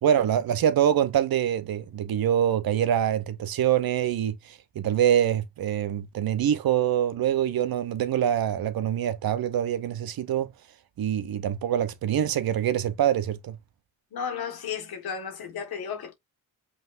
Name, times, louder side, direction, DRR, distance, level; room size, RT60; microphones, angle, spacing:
voice 1, 0.0-10.5 11.0-13.6, right 10 dB, 70° right, 0.8 m, -25 dB
voice 2, 14.1-16.1, left 7 dB, 80° left, 1.6 m, -33 dB
5.6 x 3.1 x 2.5 m
cardioid pair, 70°, 37 cm